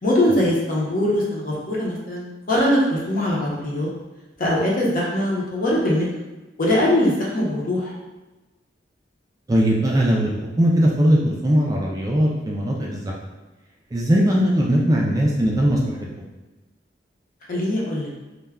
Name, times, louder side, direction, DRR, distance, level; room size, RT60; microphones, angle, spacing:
voice 1, 0.0-3.9 4.4-6.0 6.6-7.9 17.5-18.1, left 1 dB, 50° left, -4 dB, 0.7 m, -21 dB
voice 2, 9.5-13.1 13.9-16.1, equal, 20° right, -2 dB, 0.3 m, -19 dB
2.2 x 2.1 x 3.4 m, 1.1 s
head